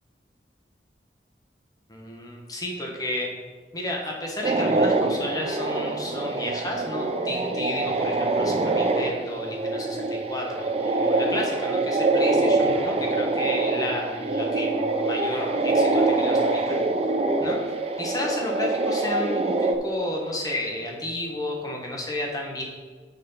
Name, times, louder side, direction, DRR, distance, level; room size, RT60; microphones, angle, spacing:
voice 1, 1.9-3.3 3.7-16.6 17.4-17.6 18.0-22.6, left 1 dB, 20° left, 0 dB, 1.3 m, -32 dB
sound 1, 4.4-19.8, right 2 dB, 35° right, 0.6 m, -24 dB
6.6 x 6.1 x 5.6 m, 1.5 s
head